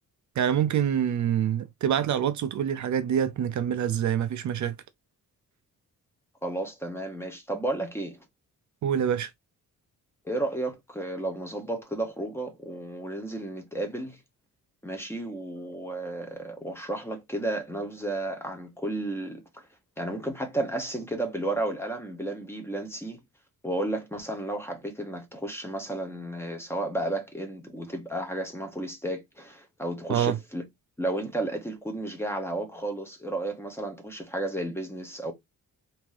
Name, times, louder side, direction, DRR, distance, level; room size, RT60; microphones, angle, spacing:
voice 1, 0.4-4.8 8.8-9.3 30.1-30.4, right 9 dB, 55° right, 0.5 m, -26 dB
voice 2, 6.4-8.2 10.2-14.2 14.8-19.4 20.0-23.2 23.6-30.6 31.0-35.3, right 1 dB, 5° left, 0.8 m, -32 dB
3.4 x 2.7 x 3.1 m
wide cardioid pair, 160°, 34 cm